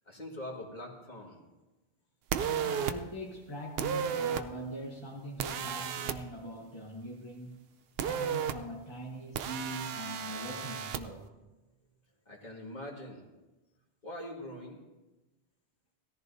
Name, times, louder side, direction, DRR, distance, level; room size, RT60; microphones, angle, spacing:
voice 1, 0.1-1.4 12.3-13.2 14.0-14.8, left 1 dB, 40° left, -1 dB, 2.0 m, -43 dB
sound 1, 2.3-2.9 3.8-4.4 5.4-6.2 8.0-8.5 9.4-11.0, right 8 dB, 65° right, 0.8 m, -33 dB
voice 2, 2.5-7.6 8.0-11.3, right 1 dB, 25° left, -1 dB, 1.1 m, -42 dB
18.0 x 14.0 x 2.7 m, 1.1 s
omnidirectional pair, 1.2 m